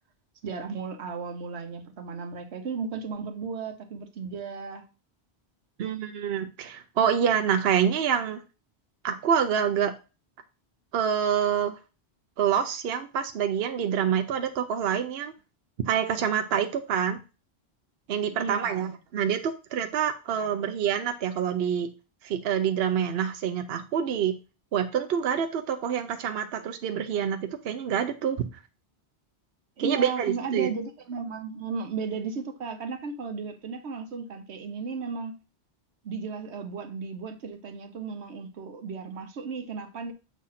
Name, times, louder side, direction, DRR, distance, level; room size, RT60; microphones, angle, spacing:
voice 1, 0.4-4.9 18.3-18.9 20.3-20.7 29.8-35.3 36.0-40.1, right 5 dB, 85° right, 1.1 m, -35 dB
voice 2, 5.8-8.4 9.0-9.9 10.9-11.8 12.4-15.3 15.9-17.2 18.1-21.9 22.2-24.3 24.7-28.5 29.8-30.7, right 8 dB, 70° right, 0.8 m, -26 dB
7.2 x 2.5 x 5.6 m
omnidirectional pair, 1.1 m